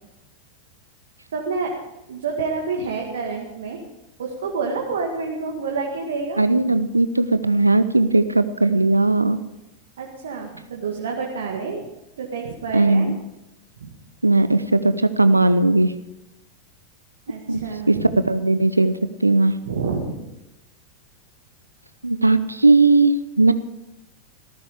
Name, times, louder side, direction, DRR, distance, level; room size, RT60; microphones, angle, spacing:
voice 1, 1.3-1.8 2.1-3.8 4.2-6.6 10.0-11.9 12.2-13.1 13.8-13.9 17.3-18.1 19.7-20.2, right 4 dB, 65° right, 1 dB, 2.0 m, -28 dB
voice 2, 6.4-9.4 12.7-13.2 14.2-15.9 17.5-17.6 17.9-18.0 18.3-18.9 19.2-19.5 22.0-23.5, right 2 dB, 85° right, 13 dB, 0.6 m, -17 dB
17.0 x 14.0 x 5.0 m, 0.95 s
figure-of-eight pair, 90°, 0 cm